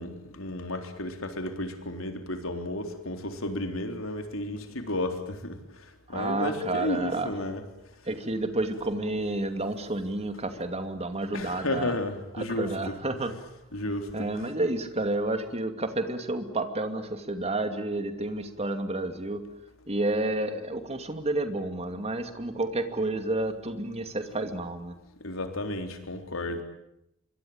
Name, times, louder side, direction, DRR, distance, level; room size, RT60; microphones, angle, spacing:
voice 1, 0.0-5.6 6.1-7.6 11.3-12.9 13.7-14.3 25.2-26.6, left 1 dB, 85° left, 6 dB, 3.9 m, -33 dB
voice 2, 6.1-7.3 8.0-11.9 12.4-13.3 14.1-19.4 19.9-24.9, right 2 dB, 30° right, 8 dB, 2.6 m, -30 dB
26.5 x 23.5 x 8.9 m, 0.84 s
head